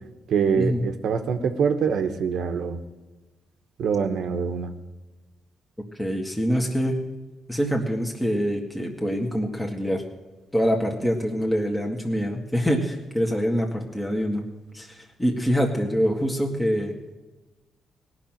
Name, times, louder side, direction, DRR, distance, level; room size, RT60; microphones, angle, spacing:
voice 1, 0.3-2.8 3.8-4.7, right 6 dB, 75° right, 7 dB, 1.1 m, -24 dB
voice 2, 5.9-7.0 7.5-10.0 10.5-14.4 14.7-16.9, equal, 10° left, 1 dB, 1.8 m, -25 dB
17.5 x 6.0 x 9.0 m, 1.2 s
cardioid pair, 85°, 0 cm